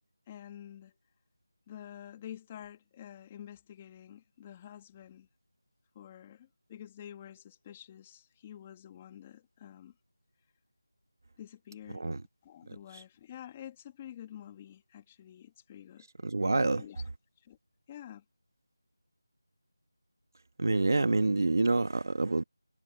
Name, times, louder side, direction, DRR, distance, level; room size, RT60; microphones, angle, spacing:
voice 1, 0.3-1.0 1.7-5.3 5.9-9.9 11.4-12.1 12.4-16.1 16.7-17.0 17.4-17.6 17.9-18.2, left 10 dB, 15° left, 2.4 m, -48 dB
voice 2, 16.2-16.8 20.6-22.4, right 2 dB, 55° right, 1.7 m, -27 dB
figure-of-eight pair, 175°, 2 cm